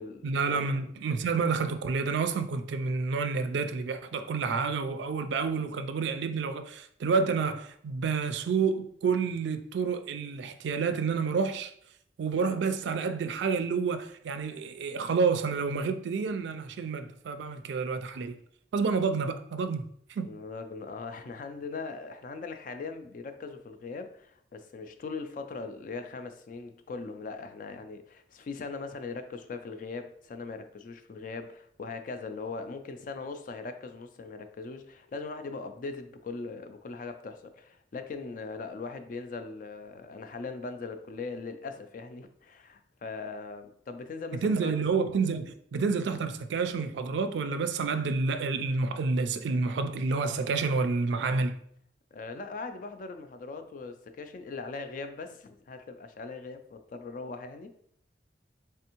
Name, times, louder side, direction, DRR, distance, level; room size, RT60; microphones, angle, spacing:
voice 1, 0.2-11.7 12.2-18.4 18.7-19.8 20.1-20.3 44.4-51.6, right 4 dB, 70° right, 0.3 m, -29 dB
voice 2, 20.2-44.7 52.1-57.8, left 4 dB, 45° left, 0.3 m, -40 dB
3.4 x 3.3 x 2.9 m
head